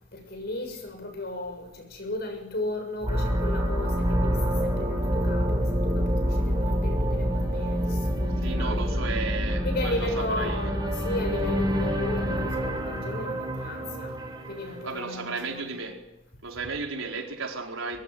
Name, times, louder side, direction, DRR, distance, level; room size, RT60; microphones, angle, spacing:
voice 1, 0.1-9.0 9.6-14.1 14.5-15.7, left 1 dB, 50° left, 7.0 m, -35 dB
sound 1, 3.0-15.0, equal, 20° right, 6.0 m, -27 dB
voice 2, 8.4-10.7 14.8-16.0 16.4-18.0, right 4 dB, 85° right, 4.6 m, -34 dB
23.5 x 21.0 x 9.5 m
head